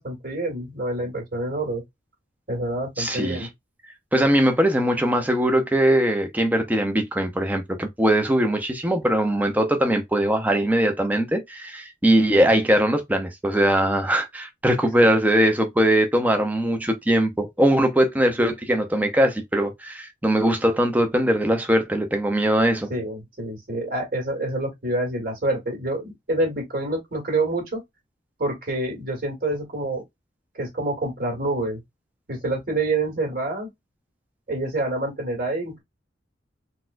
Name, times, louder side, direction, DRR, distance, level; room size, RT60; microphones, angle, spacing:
voice 1, 0.0-1.8 2.5-3.5 15.0-15.1 22.9-27.8 28.4-30.0 30.6-31.8 32.3-33.7 34.5-35.8, right 2 dB, 50° right, 1.8 m, -27 dB
voice 2, 3.0-3.5 4.1-22.9, right 1 dB, 10° right, 0.6 m, -21 dB
4.0 x 2.3 x 2.5 m
head